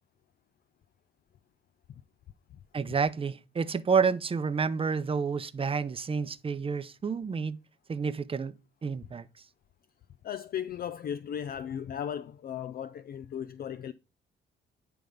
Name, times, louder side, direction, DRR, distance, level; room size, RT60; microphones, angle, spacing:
voice 1, 2.7-7.6 7.9-8.5 8.8-9.3, right 5 dB, 30° right, 0.6 m, -29 dB
voice 2, 10.2-13.9, left 9 dB, 50° left, 0.4 m, -36 dB
9.4 x 3.4 x 5.1 m
cardioid pair, 90°, 20 cm